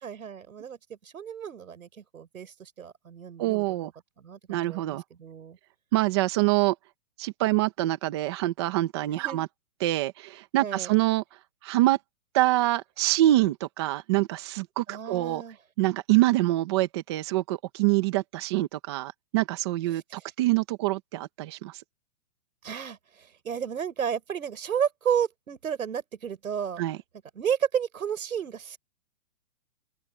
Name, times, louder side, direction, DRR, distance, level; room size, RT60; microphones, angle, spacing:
voice 1, 0.0-3.9 4.2-5.6 9.1-9.5 10.6-10.9 14.9-15.6 19.9-20.3 22.6-26.8 27.3-28.8, right 8 dB, 85° right, 6.1 m, -32 dB
voice 2, 3.4-3.9 4.5-5.0 5.9-6.7 7.2-9.5 9.8-11.2 11.6-12.0 12.3-15.4 15.8-21.8 26.8-27.0, right 17 dB, 20° right, 1.2 m, -25 dB
open air
hypercardioid pair, 175°, 41 cm